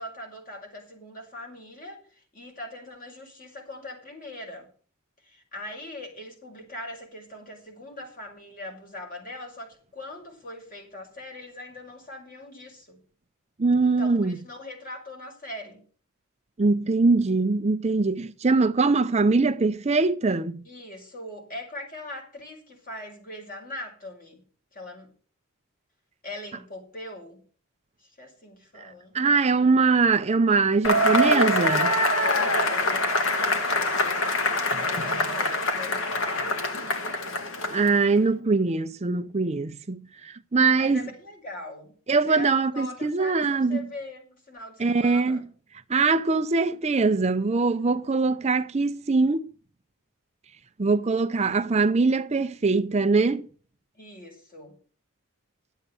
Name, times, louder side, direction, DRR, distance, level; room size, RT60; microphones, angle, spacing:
voice 1, 0.0-4.7 5.2-13.0 13.8-15.8 20.6-24.4 24.7-25.1 26.2-27.5 28.0-29.2 32.3-36.7 40.7-42.0 42.3-45.5 53.9-54.8, left 1 dB, 40° left, 5.7 m, -41 dB
voice 2, 13.6-14.4 16.6-20.6 28.8-28.9 29.1-31.9 37.7-41.0 42.1-43.9 44.8-45.5 45.9-49.5 50.8-53.5, right 3 dB, 30° right, 0.5 m, -22 dB
Cheering / Applause / Crowd, 30.8-38.1, left 1 dB, 65° left, 1.8 m, -24 dB
12.0 x 8.1 x 6.9 m
head